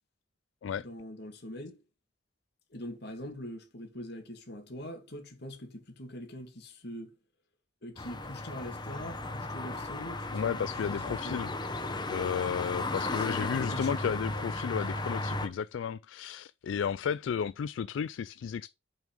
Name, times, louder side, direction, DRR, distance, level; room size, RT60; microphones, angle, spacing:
voice 1, 0.8-1.8 2.7-7.1 7.8-11.5 13.1-14.0, left 1 dB, 60° left, 2.5 m, -43 dB
sound 1, 8.0-15.5, left 2 dB, 25° left, 1.1 m, -35 dB
voice 2, 10.3-11.5 12.1-18.7, left 7 dB, 80° left, 0.3 m, -33 dB
7.1 x 6.1 x 5.1 m
head